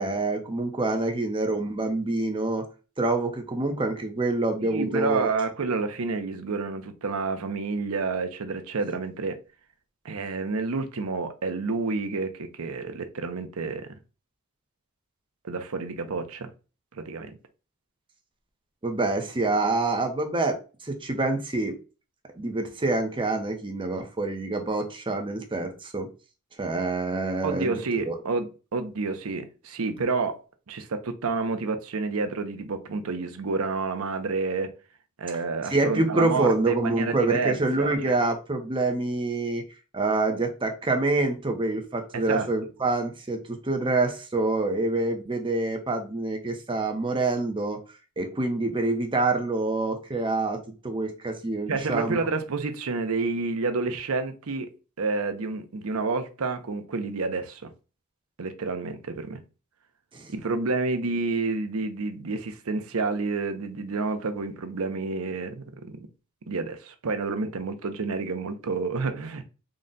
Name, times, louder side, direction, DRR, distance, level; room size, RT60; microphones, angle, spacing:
voice 1, 0.0-2.7 3.0-5.3 18.8-21.8 22.4-26.1 26.6-27.8 28.1-28.2 35.7-39.6 39.9-47.8 48.2-52.2 60.1-60.3, right 2 dB, 20° right, 0.7 m, -26 dB
voice 2, 4.6-9.4 10.0-13.9 15.4-16.5 16.9-17.4 27.4-30.4 30.7-34.7 35.2-38.2 42.1-42.6 51.7-54.7 55.0-57.7 58.4-59.4 60.3-66.1 66.5-69.5, right 4 dB, 70° right, 0.6 m, -29 dB
3.9 x 2.2 x 3.8 m
head